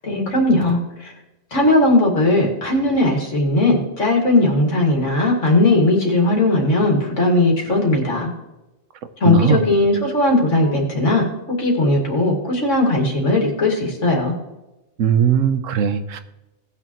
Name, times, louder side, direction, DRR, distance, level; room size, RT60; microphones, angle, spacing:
voice 1, 0.0-1.1 1.5-8.3 9.2-14.4, left 2 dB, 60° left, 0 dB, 2.5 m, -18 dB
voice 2, 9.2-9.6 15.0-16.2, right 7 dB, 65° right, 10 dB, 1.1 m, -18 dB
18.5 x 6.4 x 3.0 m, 1.0 s
omnidirectional pair, 1.4 m